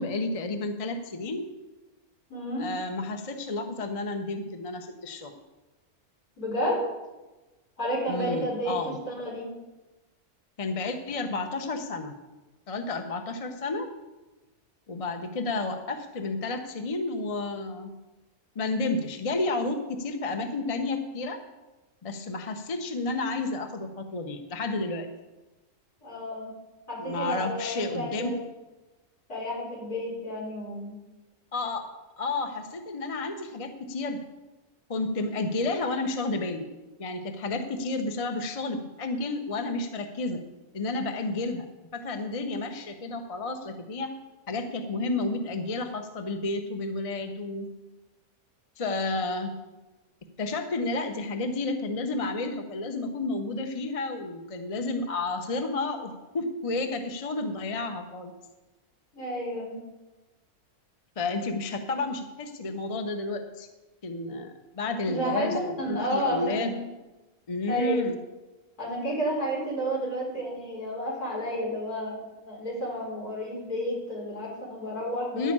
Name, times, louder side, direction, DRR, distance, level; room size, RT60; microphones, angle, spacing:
voice 1, 0.0-1.5 2.6-5.3 8.1-9.0 10.6-12.1 12.7-13.9 14.9-17.9 18.5-21.4 22.0-25.1 27.0-28.4 31.5-31.8 32.2-34.2 34.9-36.7 37.0-40.4 40.7-41.7 41.9-44.1 44.5-47.7 48.8-49.5 50.4-58.3 61.2-63.7 64.0-66.7 67.5-68.2 75.4-75.5, left 3 dB, 30° left, 6 dB, 0.8 m, -31 dB
voice 2, 2.3-2.7 6.4-6.8 7.8-9.5 26.0-26.5 26.9-28.4 29.3-31.0 59.1-59.8 65.1-66.7 67.7-68.1 68.8-75.5, equal, 75° left, -5 dB, 5.2 m, -31 dB
12.0 x 5.3 x 8.6 m, 1.1 s
omnidirectional pair, 1.6 m